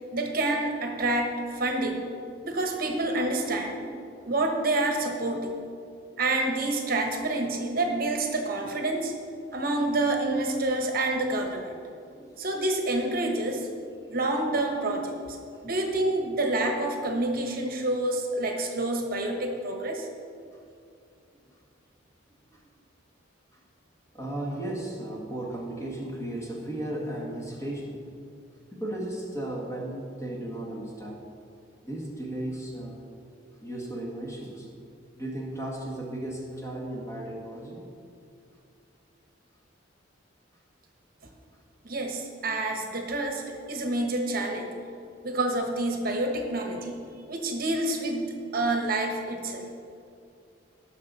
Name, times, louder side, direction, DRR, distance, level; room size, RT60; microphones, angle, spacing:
voice 1, 0.1-2.0 2.4-3.8 4.2-5.5 6.2-9.1 9.5-11.8 12.4-13.7 14.1-20.1 41.8-44.8 45.2-47.0 47.3-49.7, right 2 dB, 50° right, 3 dB, 1.1 m, -28 dB
voice 2, 24.1-28.0 28.7-31.3 31.8-33.1 33.6-34.7 35.2-37.8, right 1 dB, 15° left, -3 dB, 1.8 m, -35 dB
18.0 x 6.5 x 4.1 m, 2.4 s
head